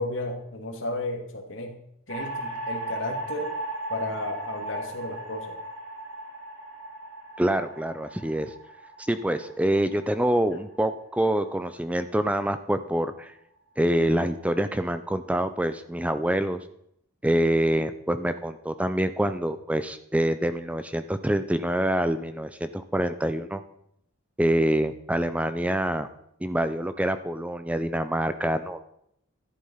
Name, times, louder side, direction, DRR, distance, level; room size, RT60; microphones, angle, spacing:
voice 1, 0.0-1.8 2.1-3.5 3.9-5.6, left 2 dB, 65° left, 3 dB, 2.6 m, -33 dB
sound 1, 2.1-12.4, right 2 dB, 85° right, 4.7 m, -37 dB
voice 2, 7.4-8.5 9.0-13.3 13.8-16.6 17.2-23.6 24.4-26.1 26.4-28.8, right 1 dB, 5° right, 11 dB, 0.5 m, -26 dB
13.5 x 11.5 x 5.6 m, 0.74 s
head